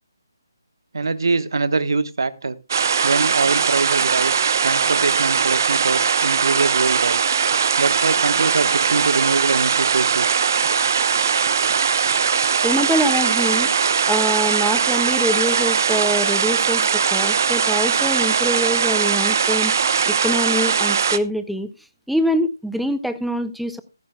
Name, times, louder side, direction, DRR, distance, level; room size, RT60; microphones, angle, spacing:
voice 1, 0.9-2.6 3.0-7.2 7.8-10.4, right 4 dB, 70° right, 14 dB, 1.2 m, -23 dB
sound 1, 2.7-21.2, right 6 dB, 50° right, 0.8 m, -20 dB
voice 2, 12.6-13.7 14.1-21.7 22.1-23.8, equal, ahead, 11 dB, 0.5 m, -24 dB
14.5 x 14.5 x 2.2 m, 0.26 s
figure-of-eight pair, 160°, 2 cm